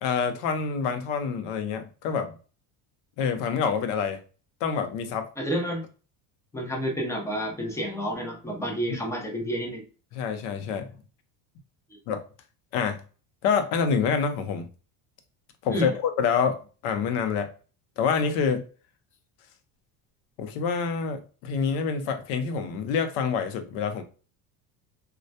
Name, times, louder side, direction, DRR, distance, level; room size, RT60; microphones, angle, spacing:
voice 1, 0.0-2.3 3.2-4.2 4.6-5.3 10.1-10.9 12.1-12.2 12.7-13.0 13.4-14.7 15.6-17.5 18.0-18.6 20.4-24.0, left 6 dB, 75° left, 0.7 m, -27 dB
voice 2, 5.4-5.9 6.5-9.8 15.7-15.9, equal, 5° left, 0.5 m, -30 dB
2.2 x 2.0 x 2.7 m
supercardioid pair, 120°, 45 cm